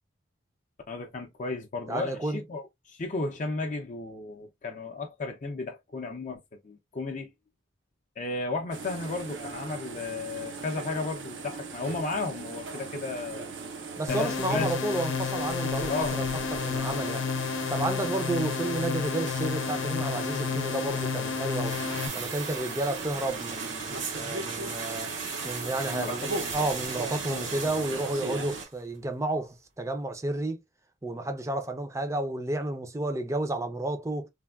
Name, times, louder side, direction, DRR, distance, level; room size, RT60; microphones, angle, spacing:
voice 1, 0.9-7.3 8.2-13.5 14.1-14.8 15.9-16.2 16.5-16.7 25.9-26.3 27.6-27.7, left 3 dB, 40° left, 0.4 m, -34 dB
voice 2, 1.9-2.4 14.0-16.2 16.5-17.2 17.7-21.8 22.1-25.1 25.4-30.6 31.0-34.3, right 2 dB, 15° right, 0.4 m, -31 dB
sound 1, 8.7-28.6, right 3 dB, 70° right, 0.6 m, -39 dB
sound 2, 14.1-22.1, left 6 dB, 80° left, 0.7 m, -31 dB
sound 3, 21.5-28.8 29.1-29.2, right 4 dB, 85° right, 1.4 m, -37 dB
3.3 x 2.2 x 2.3 m
head